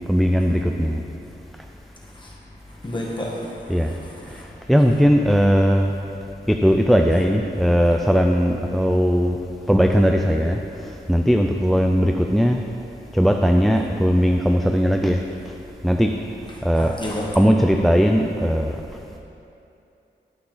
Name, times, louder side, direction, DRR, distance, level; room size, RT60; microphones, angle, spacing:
voice 1, 0.1-1.0 3.7-3.9 4.7-5.9 6.5-9.4 9.7-12.6 13.1-15.2 15.8-16.1 16.6-16.9 17.4-18.8, equal, ahead, 3 dB, 0.3 m, -18 dB
voice 2, 2.8-4.4 16.8-17.4, left 1 dB, 25° left, -4 dB, 1.6 m, -31 dB
11.0 x 5.8 x 3.9 m, 2.7 s
wide cardioid pair, 100°, 20 cm